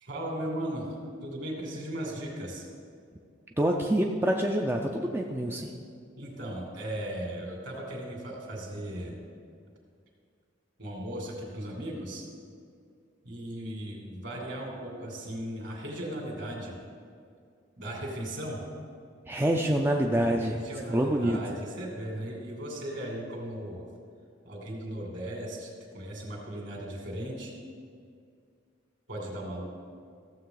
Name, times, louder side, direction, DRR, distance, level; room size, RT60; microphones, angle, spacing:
voice 1, 0.0-2.7 6.2-9.2 10.8-12.2 13.2-16.7 17.8-18.6 19.6-19.8 20.3-23.9 24.4-27.5 29.1-29.6, right 1 dB, 55° right, -1 dB, 2.4 m, -37 dB
voice 2, 3.6-5.7 19.3-20.6 20.9-21.4, right 1 dB, 10° right, 1 dB, 0.4 m, -26 dB
14.5 x 7.4 x 3.9 m, 2.3 s
head